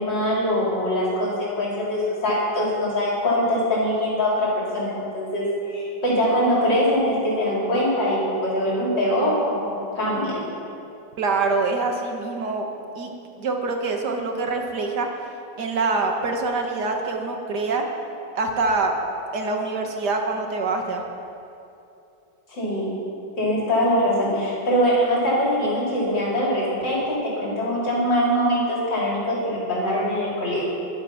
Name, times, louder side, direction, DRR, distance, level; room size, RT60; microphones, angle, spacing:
voice 1, 0.0-10.4 22.5-22.9 23.4-30.7, equal, 80° left, -6 dB, 4.9 m, -23 dB
voice 2, 11.2-12.7 13.0-13.1 13.4-15.1 15.6-17.9 18.4-18.9 19.3-21.0, right 3 dB, 65° right, 2 dB, 1.9 m, -25 dB
22.0 x 8.2 x 5.8 m, 2.7 s
omnidirectional pair, 1.9 m